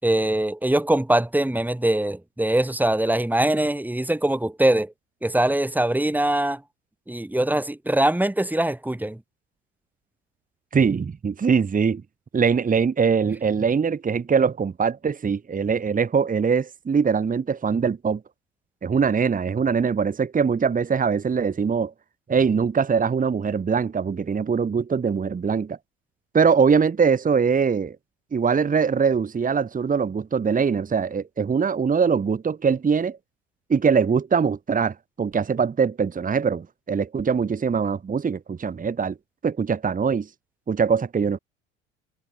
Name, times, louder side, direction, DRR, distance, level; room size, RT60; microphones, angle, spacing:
voice 1, 0.0-4.9 5.2-6.6 7.1-9.2, right 1 dB, 5° right, 4.0 m, -22 dB
voice 2, 10.7-12.0 12.3-18.2 18.8-21.9 22.3-25.8 26.3-28.0 28.3-33.2 33.7-39.2 39.4-40.3 40.7-41.4, right 6 dB, 20° right, 1.8 m, -22 dB
figure-of-eight pair, 65°, 36 cm